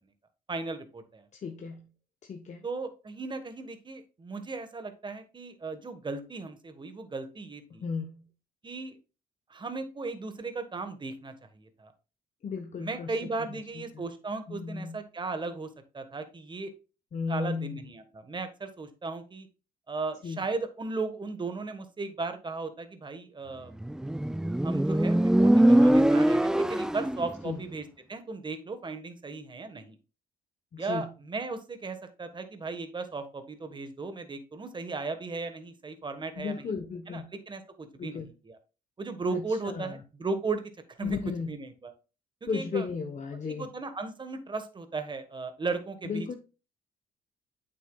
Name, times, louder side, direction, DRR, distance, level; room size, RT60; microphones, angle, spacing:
voice 1, 0.5-1.2 2.6-7.8 8.6-9.0 9.5-11.9 12.8-15.7 15.9-16.7 17.3-19.5 19.9-23.8 24.6-29.9 30.8-36.7 37.1-38.6 39.0-41.2 41.5-41.9 42.4-42.9 43.4-46.3, right 3 dB, 30° right, 8 dB, 1.4 m, -36 dB
voice 2, 1.3-1.9 2.2-2.6 7.7-8.3 12.4-13.1 13.5-14.1 14.5-15.0 17.1-17.9 20.2-20.4 27.4-27.6 30.7-31.1 36.4-37.3 38.0-38.3 39.3-39.9 41.0-41.5 42.5-43.7 46.0-46.4, left 5 dB, 45° left, 4 dB, 1.1 m, -35 dB
Motorcycle, 23.8-27.3, right 1 dB, 5° right, 0.3 m, -22 dB
8.4 x 7.2 x 2.3 m, 0.32 s
cardioid pair, 85°, 17 cm